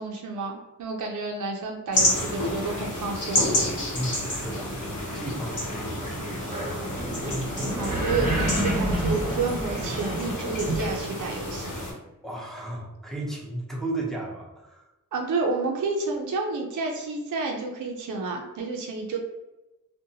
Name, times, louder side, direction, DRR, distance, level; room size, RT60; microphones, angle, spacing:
voice 1, 0.0-3.4 7.6-11.7 15.1-19.2, right 3 dB, 60° right, 1 dB, 0.5 m, -30 dB
sound 1, 1.9-11.9, left 1 dB, 60° left, 1.0 m, -30 dB
sound 2, 3.5-10.9, right 1 dB, 25° right, 0.8 m, -30 dB
voice 2, 3.9-6.7 12.2-14.9, right 1 dB, ahead, -3 dB, 0.6 m, -35 dB
2.6 x 2.1 x 2.7 m, 0.99 s
wide cardioid pair, 75°, 34 cm